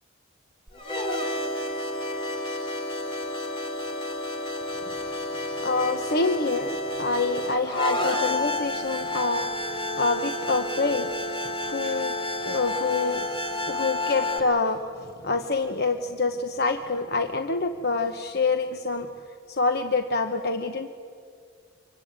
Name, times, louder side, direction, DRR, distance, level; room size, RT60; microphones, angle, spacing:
sound 1, 0.7-14.4, left 2 dB, 25° left, 2.8 m, -30 dB
voice 1, 5.6-9.5 10.0-13.3 13.7-19.1 19.5-20.9, left 3 dB, 50° left, 7 dB, 1.1 m, -26 dB
25.0 x 24.5 x 8.9 m, 2.2 s
head